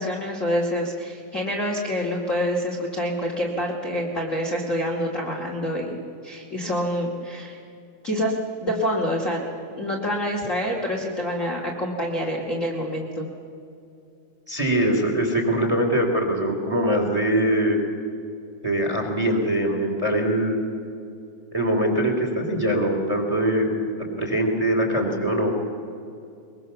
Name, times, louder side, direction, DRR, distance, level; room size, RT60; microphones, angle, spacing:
voice 1, 0.0-6.0 6.2-7.6 8.0-9.4 9.8-13.3, equal, 25° left, -2 dB, 2.1 m, -27 dB
voice 2, 14.5-17.8 18.6-20.6 21.5-25.5, right 1 dB, 10° right, 3 dB, 3.0 m, -22 dB
22.5 x 22.0 x 7.0 m, 2.6 s
omnidirectional pair, 3.8 m